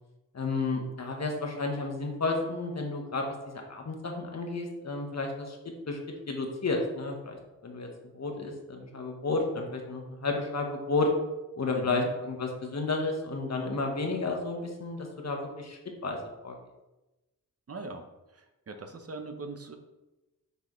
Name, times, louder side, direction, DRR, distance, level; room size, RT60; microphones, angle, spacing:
voice 1, 0.3-5.6 5.9-6.0 6.3-7.4 7.6-7.9 8.1-11.1 11.6-16.2 16.4-16.5, left 3 dB, 50° left, 2 dB, 1.3 m, -32 dB
voice 2, 11.7-12.1 17.7-18.0 18.4-19.8, right 3 dB, 45° right, 5 dB, 0.8 m, -40 dB
6.8 x 4.7 x 3.1 m, 1.0 s
cardioid pair, 75°, 35 cm